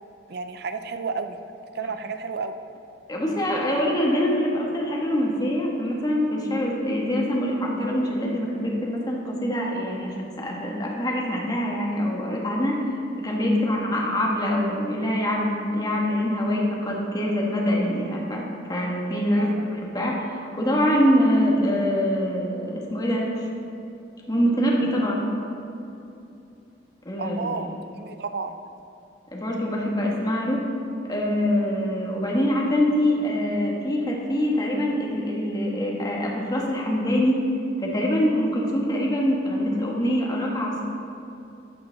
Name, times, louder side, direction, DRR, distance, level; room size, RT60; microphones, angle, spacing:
voice 1, 0.3-1.4 1.7-2.5 13.5-13.7 19.4-19.7 27.2-27.7 27.9-28.5, right 4 dB, 60° right, 8 dB, 0.5 m, -31 dB
voice 2, 3.1-12.8 13.2-18.4 18.7-19.5 19.8-23.5 24.3-25.3 27.0-27.5 29.3-30.6 31.1-37.4 37.8-40.8, equal, 20° left, -2 dB, 1.3 m, -24 dB
12.5 x 5.8 x 3.9 m, 2.7 s
head